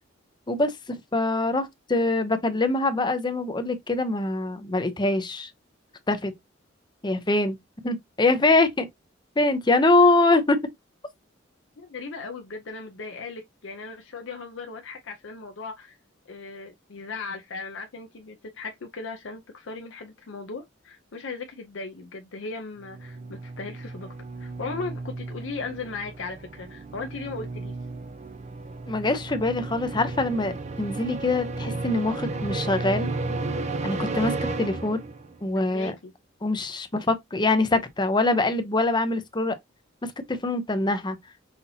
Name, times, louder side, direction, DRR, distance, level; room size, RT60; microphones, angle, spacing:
voice 1, 0.5-5.5 6.1-6.3 7.0-7.6 7.8-8.9 9.4-10.6 28.9-33.1 33.8-35.0 35.4-35.9 36.4-39.5 40.0-41.2, left 2 dB, 25° left, 0.6 m, -24 dB
voice 2, 11.8-16.0 16.3-24.1 24.4-27.8 35.5-36.1, left 4 dB, 70° left, 0.6 m, -37 dB
sound 1, 22.8-35.4, right 3 dB, 35° right, 0.5 m, -33 dB
5.7 x 2.7 x 2.7 m
head